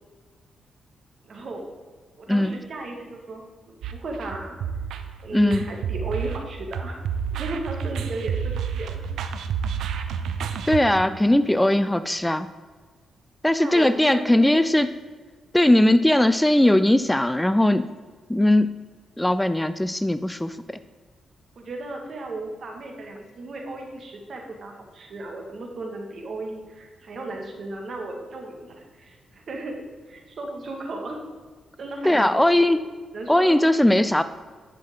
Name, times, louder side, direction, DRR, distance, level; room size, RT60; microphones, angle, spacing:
voice 1, 1.3-1.7 2.2-4.6 5.2-7.0 7.3-9.0 13.5-14.6 21.6-29.8 30.1-31.3 31.8-32.4 33.1-33.6, right 2 dB, 60° right, 1 dB, 1.9 m, -35 dB
sound 1, 3.8-10.8, right 7 dB, 80° right, 0.6 m, -30 dB
voice 2, 5.3-5.7 10.7-12.5 13.4-14.9 15.5-17.9 18.3-18.7 19.2-20.8 32.0-32.8 33.3-34.2, left 1 dB, 10° left, 12 dB, 0.4 m, -19 dB
10.5 x 6.2 x 3.8 m, 1.5 s
cardioid pair, 65°, 0 cm